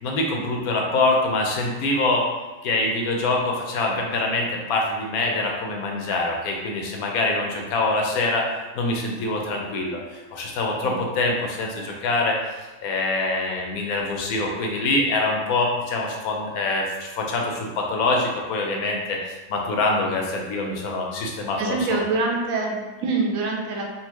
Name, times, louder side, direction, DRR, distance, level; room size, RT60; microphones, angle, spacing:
voice 1, 0.0-2.3 2.6-8.5 8.7-12.4 12.8-19.2 19.5-22.0, left 2 dB, 85° left, 0 dB, 1.1 m, -24 dB
voice 2, 21.6-23.8, right 3 dB, 75° right, 0 dB, 1.0 m, -25 dB
4.0 x 2.1 x 2.9 m, 1.2 s
omnidirectional pair, 1.5 m